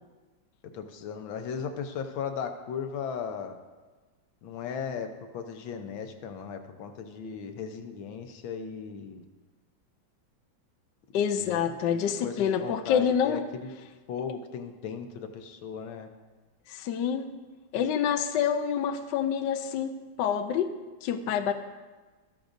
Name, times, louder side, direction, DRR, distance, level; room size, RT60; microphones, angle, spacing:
voice 1, 0.7-3.6 4.4-9.2 11.4-11.8 12.2-13.7 14.1-16.1, left 6 dB, 90° left, 6 dB, 1.6 m, -37 dB
voice 2, 11.1-13.4 16.7-17.2 17.7-20.7 21.0-21.5, left 8 dB, 75° left, 7 dB, 1.2 m, -27 dB
13.5 x 13.5 x 2.6 m, 1.3 s
omnidirectional pair, 2.1 m